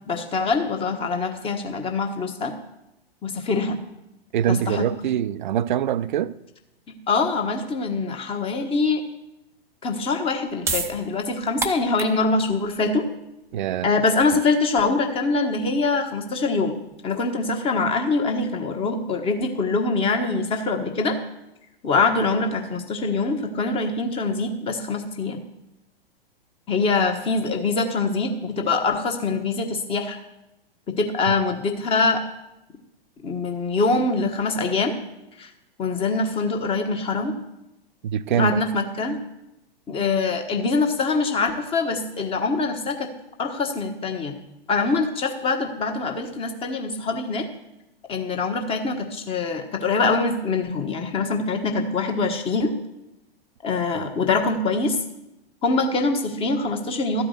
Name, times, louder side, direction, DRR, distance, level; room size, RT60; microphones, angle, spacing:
voice 1, 0.1-2.5 3.2-3.8 4.7-4.9 6.9-9.0 9.8-13.1 13.8-16.8 17.0-21.2 21.8-25.4 26.7-30.2 30.9-32.2 33.2-35.0 35.4-35.5 35.8-37.4 38.3-39.2 39.9-43.1 43.4-44.4 44.7-47.5 48.1-52.7 53.6-55.0 55.6-57.2, left 3 dB, 20° left, 4 dB, 1.2 m, -24 dB
voice 2, 4.3-6.3 13.5-13.9 38.0-38.5 53.9-54.1, right 10 dB, 55° right, 16 dB, 0.5 m, -24 dB
sound 1, 10.3-16.9, right 4 dB, 10° right, 0.6 m, -34 dB
13.0 x 5.1 x 7.9 m, 0.92 s
figure-of-eight pair, 105°, 30 cm